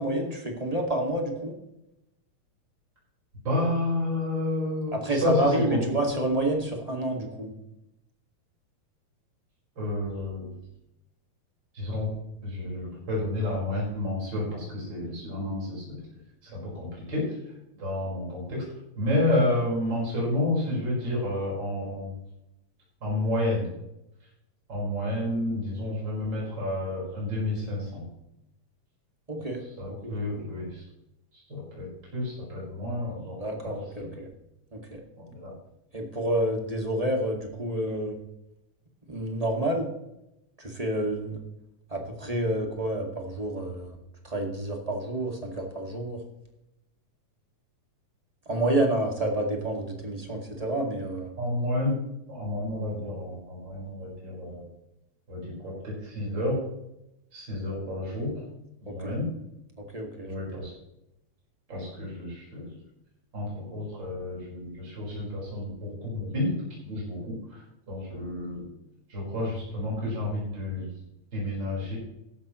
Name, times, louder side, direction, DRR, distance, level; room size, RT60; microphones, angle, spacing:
voice 1, 0.0-1.5 4.9-7.5 29.3-30.3 33.4-34.3 34.7-35.0 35.9-38.2 39.1-39.9 40.6-41.4 41.9-44.0 44.2-46.2 48.5-51.3 58.9-59.2 59.8-60.3, right 1 dB, 15° right, 1 dB, 1.8 m, -29 dB
voice 2, 3.4-5.8 9.8-10.6 11.7-12.1 12.4-16.0 16.4-17.2 17.8-18.6 19.0-22.1 23.0-23.7 24.7-28.1 29.8-30.8 31.3-34.1 35.3-35.5 51.4-51.9 52.3-54.7 55.3-56.6 57.3-58.4 58.9-59.2 60.2-60.7 61.7-62.7 63.3-66.6 66.8-68.7 69.1-70.9 71.3-72.0, left 1 dB, 35° right, -5 dB, 5.7 m, -30 dB
15.0 x 12.0 x 3.1 m, 0.86 s
omnidirectional pair, 3.3 m